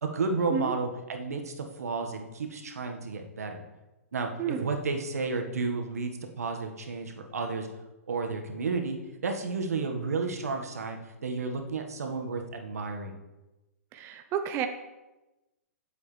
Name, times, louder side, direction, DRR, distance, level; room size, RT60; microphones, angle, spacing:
voice 1, 0.0-3.6 4.1-6.1 6.4-7.7 8.1-9.0 9.2-13.1, right 4 dB, 80° right, 4 dB, 1.6 m, -32 dB
voice 2, 13.9-14.7, right 8 dB, 30° right, 7 dB, 0.8 m, -30 dB
17.0 x 7.7 x 3.4 m, 1.1 s
hypercardioid pair, 125°, 8 cm